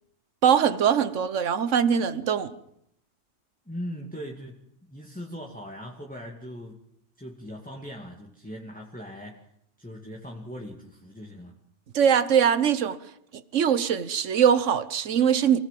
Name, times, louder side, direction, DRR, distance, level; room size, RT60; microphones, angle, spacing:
voice 1, 0.4-2.5 11.9-13.0 13.3-15.6, right 8 dB, 75° right, 1.4 m, -22 dB
voice 2, 3.7-6.8 7.2-9.4 9.8-11.6, equal, 5° left, 2.4 m, -40 dB
28.5 x 18.0 x 7.6 m
omnidirectional pair, 1.3 m